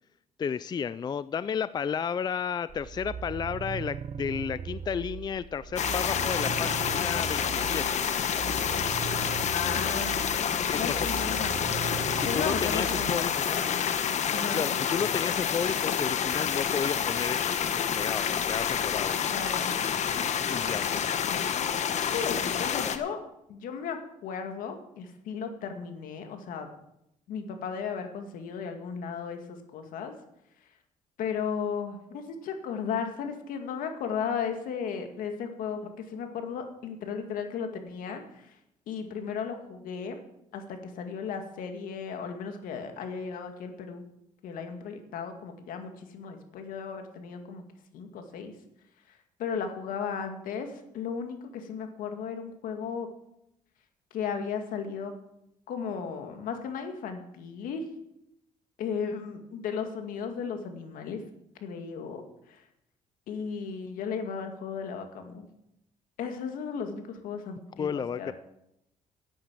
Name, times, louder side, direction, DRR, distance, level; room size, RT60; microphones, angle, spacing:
voice 1, 0.4-8.1 10.7-11.2 12.1-13.6 14.5-19.2 20.5-21.2 67.8-68.3, left 7 dB, 30° left, 16 dB, 0.4 m, -33 dB
sound 1, 2.7-13.3, right 8 dB, 45° right, 0.7 m, -39 dB
sound 2, 5.8-23.0, left 8 dB, 55° left, 1.1 m, -28 dB
voice 2, 9.5-12.0 12.3-13.9 14.3-14.7 19.3-19.7 22.0-23.2 23.5-26.7 27.3-30.1 31.2-38.5 38.9-40.2 40.5-44.0 44.4-47.6 47.9-48.5 49.1-53.1 54.1-55.1 55.7-57.9 58.8-61.2 61.6-62.2 62.5-62.6 63.3-65.5 66.2-68.3, left 6 dB, 80° left, 6 dB, 2.1 m, -35 dB
11.0 x 8.7 x 7.5 m, 0.83 s
cardioid pair, 95°, 14 cm